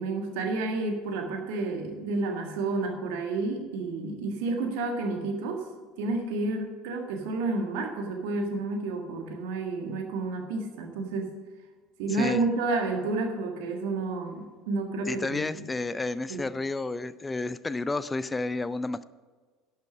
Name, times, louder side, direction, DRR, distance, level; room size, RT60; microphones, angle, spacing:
voice 1, 0.0-5.7 6.0-11.3 12.0-15.6 16.3-16.5, right 3 dB, 60° right, 4 dB, 1.6 m, -30 dB
voice 2, 15.1-19.0, left 3 dB, 15° left, 16 dB, 0.4 m, -31 dB
11.5 x 6.4 x 6.1 m, 1.4 s
figure-of-eight pair, 65°, 0 cm